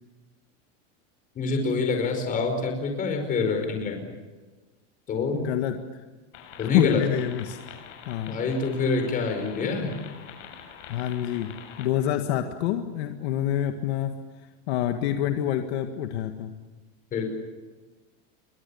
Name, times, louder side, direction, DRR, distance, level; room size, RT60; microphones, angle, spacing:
voice 1, 1.4-4.1 5.1-5.5 6.6-7.0 8.3-10.0 17.1-17.3, left 4 dB, 20° left, 5 dB, 5.1 m, -26 dB
voice 2, 5.3-6.0 6.6-7.6 8.1-8.4 10.9-11.5 11.8-14.1 14.7-16.5, left 11 dB, 60° left, 6 dB, 1.9 m, -27 dB
sound 1, 6.3-11.9, left 8 dB, 80° left, 7.2 m, -45 dB
29.0 x 23.5 x 7.1 m, 1.3 s
supercardioid pair, 170°, 36 cm